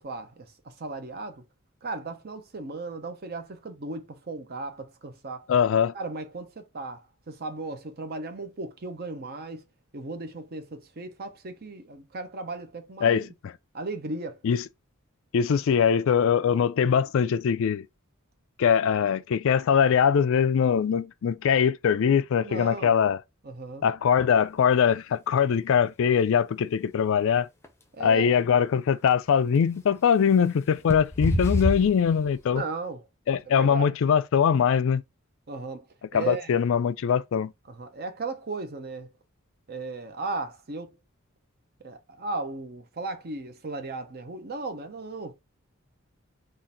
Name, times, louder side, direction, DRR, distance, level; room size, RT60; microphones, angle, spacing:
voice 1, 0.0-1.4 1.8-5.5 5.9-9.6 9.9-13.3 13.7-14.4 22.4-23.0 23.4-23.9 27.9-28.4 32.5-33.0 33.5-33.9 35.5-35.9 36.1-36.5 37.7-39.1 39.7-41.0 41.8-45.3, right 3 dB, 50° right, 0.8 m, -36 dB
voice 2, 5.5-5.9 13.0-13.5 14.4-14.6 15.3-17.9 18.6-23.2 23.8-27.5 28.0-32.6 33.3-35.0 36.1-37.5, left 7 dB, 65° left, 0.4 m, -22 dB
sound 1, 25.4-25.5 27.6-27.7 29.5-29.6 30.8-32.6, left 1 dB, 10° left, 0.6 m, -27 dB
3.8 x 2.5 x 4.1 m
head